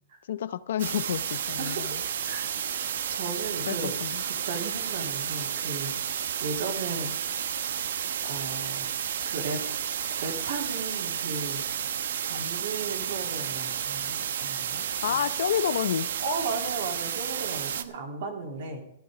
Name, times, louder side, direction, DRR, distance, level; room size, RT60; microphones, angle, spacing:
voice 1, 0.3-2.0 3.7-4.2 15.0-16.1, left 10 dB, 60° left, 0.7 m, -29 dB
sound 1, 0.8-17.8, right 8 dB, 65° right, 1.0 m, -31 dB
voice 2, 1.6-1.9 2.2-2.5 3.1-3.9 4.4-5.9 6.4-7.1 8.2-8.8 9.3-9.6 10.2-11.6 12.2-15.2 16.2-18.8, right 4 dB, 50° right, 3.0 m, -35 dB
14.0 x 12.0 x 4.9 m
hypercardioid pair, 180°, 0 cm